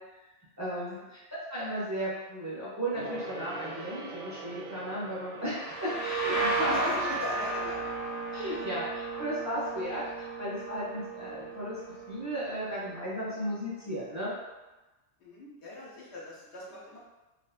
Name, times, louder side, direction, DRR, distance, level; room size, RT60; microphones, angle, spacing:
voice 1, 0.6-1.2 1.5-7.0 8.3-11.8 12.1-14.3, equal, 25° right, -9 dB, 0.3 m, -35 dB
Gong, 2.9-8.8 9.1-9.2, right 3 dB, 60° right, 0.6 m, -44 dB
sound 1, 5.4-13.0, right 3 dB, 40° left, 0.8 m, -34 dB
voice 2, 6.7-7.9 8.5-8.7 15.2-17.0, left 1 dB, 70° left, -6 dB, 0.9 m, -39 dB
2.6 x 2.1 x 2.3 m, 1.1 s
omnidirectional pair, 1.2 m